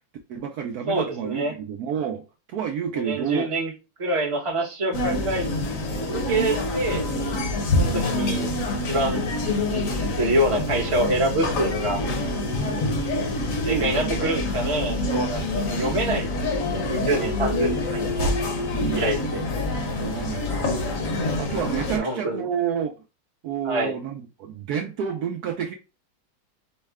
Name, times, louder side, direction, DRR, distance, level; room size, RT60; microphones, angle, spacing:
voice 1, 0.3-2.2 2.5-3.5 5.0-5.2 7.7-8.1 13.6-14.4 15.5-15.9 17.2-17.4 18.5-19.2 20.0-21.1 21.4-23.0 23.4-25.7, right 8 dB, 80° right, 0.8 m, -30 dB
voice 2, 0.9-1.5 2.9-3.7 4.0-5.4 6.0-7.1 7.8-8.5 8.9-9.2 9.7-9.8 10.2-12.1 13.6-18.3 18.9-19.4 21.9-22.5 23.6-23.9, right 1 dB, 25° right, 0.7 m, -26 dB
sound 1, 4.9-22.0, left 2 dB, 55° left, 1.0 m, -26 dB
5.3 x 2.1 x 3.4 m
omnidirectional pair, 2.2 m